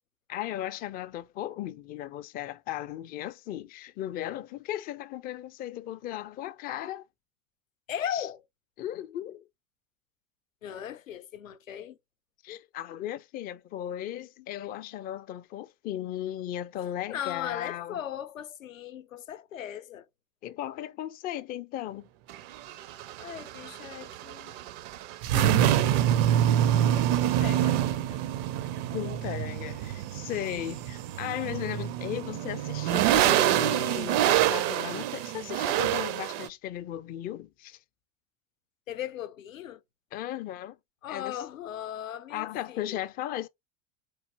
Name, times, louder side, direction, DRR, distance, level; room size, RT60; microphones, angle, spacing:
voice 1, 0.3-7.1 8.1-8.3 8.8-9.4 12.4-18.0 20.4-22.1 25.3-25.9 28.9-37.8 40.1-40.8 41.1-41.4 42.3-43.5, left 12 dB, 25° left, 0.3 m, -36 dB
voice 2, 7.9-8.4 10.6-12.0 17.1-20.1 23.2-24.5 26.6-28.2 38.9-39.8 41.0-43.1, left 10 dB, 80° left, 0.6 m, -38 dB
sound 1, 22.3-36.5, right 12 dB, 45° right, 0.5 m, -26 dB
4.1 x 3.1 x 2.8 m
figure-of-eight pair, 75°, 39 cm